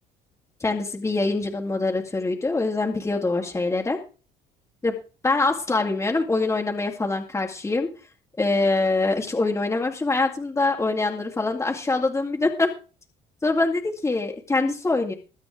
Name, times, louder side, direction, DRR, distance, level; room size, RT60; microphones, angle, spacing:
voice 1, 0.6-4.0 4.8-5.0 5.2-7.9 8.4-12.7 13.4-15.1, left 3 dB, 15° left, 0 dB, 2.2 m, -24 dB
21.5 x 8.8 x 3.7 m, 0.35 s
cardioid pair, 110°, 17 cm